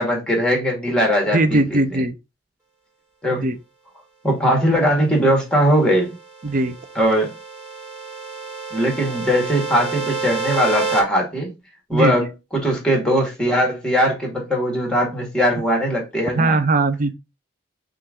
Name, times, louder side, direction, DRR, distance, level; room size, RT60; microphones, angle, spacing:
voice 1, 0.0-1.8 3.2-3.4 4.2-6.2 7.0-7.3 8.7-11.5 11.9-12.3 12.6-16.6, equal, 5° left, 1.8 m, -20 dB
voice 2, 1.3-2.2 3.4-3.6 6.4-6.8 11.9-12.3 16.3-17.1, right 2 dB, 45° right, 0.6 m, -19 dB
sound 1, 6.1-11.0, right 4 dB, 15° right, 2.1 m, -29 dB
5.5 x 2.6 x 3.6 m
head